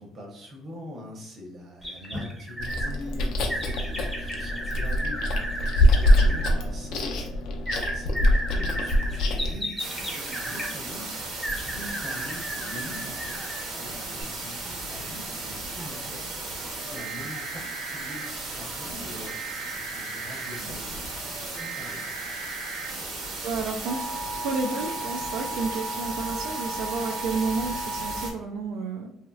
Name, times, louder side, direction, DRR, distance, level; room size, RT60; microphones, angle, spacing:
voice 1, 0.0-20.8 21.3-22.2, left 1 dB, 35° right, -1 dB, 0.9 m, -43 dB
sound 1, 1.8-2.9 3.5-6.5 7.7-10.8 11.4-13.7 14.2-14.3, equal, ahead, 0.6 m, -34 dB
Chewing mastication, 2.6-9.6, left 1 dB, 65° left, 0.5 m, -24 dB
sound 2, 9.8-28.3, right 2 dB, 60° right, 1.0 m, -34 dB
voice 2, 23.4-24.1 24.3-29.1, right 4 dB, 80° right, 1 dB, 0.3 m, -31 dB
2.9 x 2.7 x 2.3 m, 0.75 s
cardioid pair, 150°, 0 cm